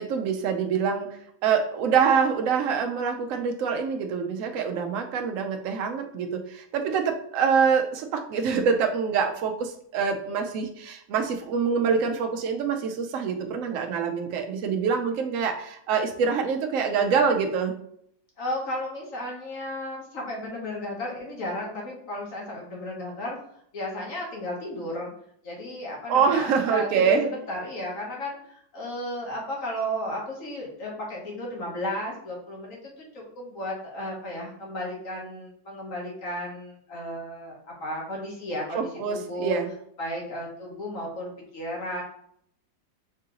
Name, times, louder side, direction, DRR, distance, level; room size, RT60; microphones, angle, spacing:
voice 1, 0.0-17.7 26.1-27.3 38.7-39.7, right 6 dB, 85° right, 4 dB, 0.7 m, -25 dB
voice 2, 18.4-23.4 23.7-25.1 25.4-39.6 40.0-42.0, left 1 dB, 50° left, -2 dB, 1.4 m, -34 dB
4.7 x 2.8 x 3.7 m, 0.68 s
omnidirectional pair, 2.0 m